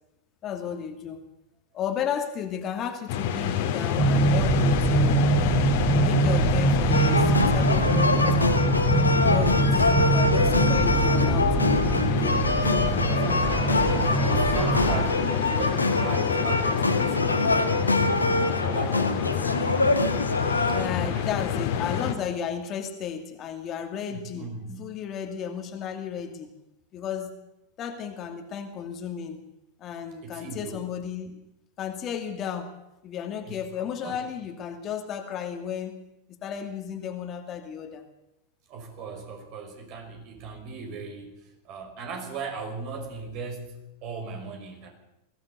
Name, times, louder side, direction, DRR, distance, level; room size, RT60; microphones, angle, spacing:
voice 1, 0.4-1.2 1.7-5.3 6.0-8.7 9.1-12.4 20.7-24.5 24.8-26.5 26.9-27.3 27.8-29.4 29.8-31.3 31.8-32.7 33.0-36.0 36.3-38.0, left 8 dB, 30° left, 5 dB, 2.5 m, -33 dB
sound 1, 3.1-22.1, left 8 dB, 50° left, 2.6 m, -27 dB
sound 2, 4.0-15.0, right 3 dB, 25° right, 6.7 m, -24 dB
sound 3, 6.9-20.9, left 2 dB, 80° left, 1.9 m, -25 dB
voice 2, 9.1-9.9 11.2-12.0 12.5-19.9 21.0-22.3 24.1-25.0 30.2-30.9 33.4-34.2 38.7-44.9, right 4 dB, 40° right, 5 dB, 5.6 m, -39 dB
21.5 x 16.0 x 8.1 m, 0.88 s
figure-of-eight pair, 90°, 0 cm